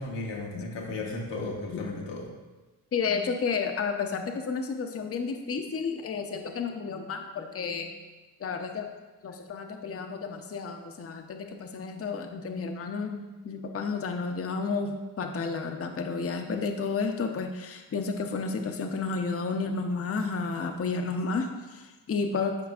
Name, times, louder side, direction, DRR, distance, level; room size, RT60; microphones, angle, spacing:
voice 1, 0.0-2.3, left 2 dB, 85° left, -1 dB, 1.3 m, -35 dB
voice 2, 2.9-7.9 8.4-8.9 9.2-22.6, left 4 dB, 35° left, 5 dB, 0.6 m, -31 dB
9.5 x 4.6 x 2.4 m, 1.2 s
cardioid pair, 60°, 41 cm